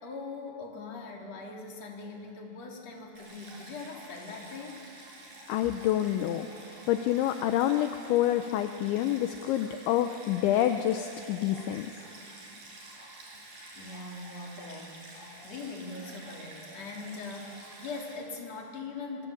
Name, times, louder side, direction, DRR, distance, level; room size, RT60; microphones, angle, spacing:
voice 1, 0.0-4.8 13.7-19.3, left 3 dB, 35° left, 0 dB, 4.0 m, -41 dB
Stream, 3.2-18.2, right 2 dB, 45° right, 8.0 m, -49 dB
voice 2, 5.5-6.5 6.9-11.9, left 12 dB, 80° left, 7 dB, 2.9 m, -27 dB
25.5 x 24.5 x 8.6 m, 2.7 s
omnidirectional pair, 5.8 m